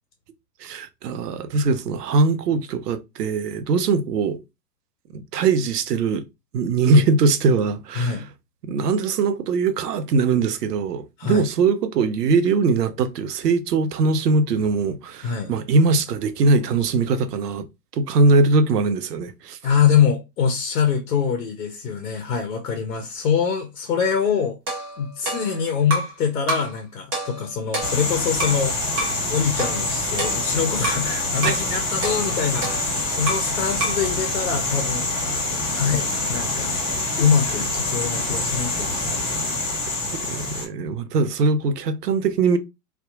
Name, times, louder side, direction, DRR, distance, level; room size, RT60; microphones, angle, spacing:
voice 1, 0.6-4.4 5.1-6.2 6.5-8.3 8.6-17.7 17.9-19.6 31.4-31.6 33.5-33.6 40.2-42.6, right 3 dB, 70° right, 0.6 m, -21 dB
voice 2, 8.0-8.3 11.2-11.5 15.2-15.5 19.6-24.6 25.0-35.2 35.7-36.7 37.2-39.2, left 7 dB, 55° left, 0.6 m, -24 dB
sound 1, 24.7-26.2 26.5-26.8 27.1-28.6 29.0-29.2 29.6-31.1 31.4-31.7 32.0-33.5 33.8-34.1, right 2 dB, 15° right, 0.4 m, -29 dB
sound 2, 27.8-40.7, left 2 dB, 15° left, 1.4 m, -26 dB
2.7 x 2.2 x 2.4 m
figure-of-eight pair, 115°, 50 cm